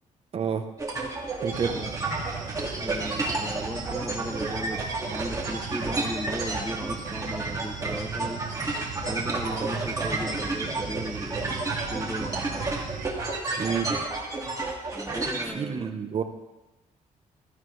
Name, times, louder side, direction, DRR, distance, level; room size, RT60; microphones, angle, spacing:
voice 1, 0.3-0.6 1.4-1.8 13.6-13.9 15.5-16.2, right 7 dB, 45° right, 7 dB, 1.0 m, -28 dB
sound 1, 0.8-15.5, right 2 dB, 25° right, 2.3 m, -31 dB
sound 2, 1.5-13.1, right 7 dB, 65° right, 1.0 m, -37 dB
voice 2, 2.8-8.5 9.0-12.8 14.9-16.0, equal, ahead, 5 dB, 0.6 m, -36 dB
15.5 x 13.0 x 3.3 m, 1.0 s
wide cardioid pair, 150°, 14 cm